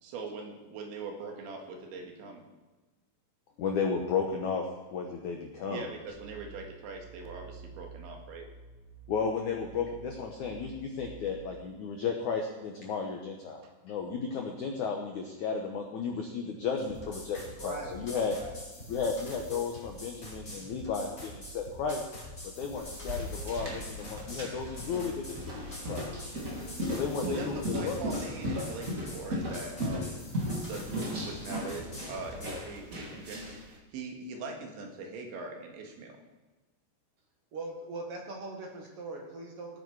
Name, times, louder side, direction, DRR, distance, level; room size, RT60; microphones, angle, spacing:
voice 1, 0.0-2.4 5.7-8.5 27.3-30.2 30.7-36.2, right 3 dB, 85° right, 2 dB, 4.2 m, -41 dB
voice 2, 3.6-5.9 9.1-18.4 18.9-22.0 22.6-26.1 26.8-28.0, left 5 dB, 85° left, 2 dB, 1.7 m, -34 dB
sound 1, 6.1-11.6, right 6 dB, 10° right, 3.6 m, -50 dB
sound 2, 16.8-32.6, left 1 dB, 15° left, 3.9 m, -45 dB
voice 3, 17.6-18.6 37.5-39.8, right 2 dB, 55° right, 1 dB, 1.7 m, -41 dB
sound 3, 22.8-33.7, equal, 30° right, 1.4 m, -37 dB
18.5 x 9.4 x 4.7 m, 1.2 s
omnidirectional pair, 5.1 m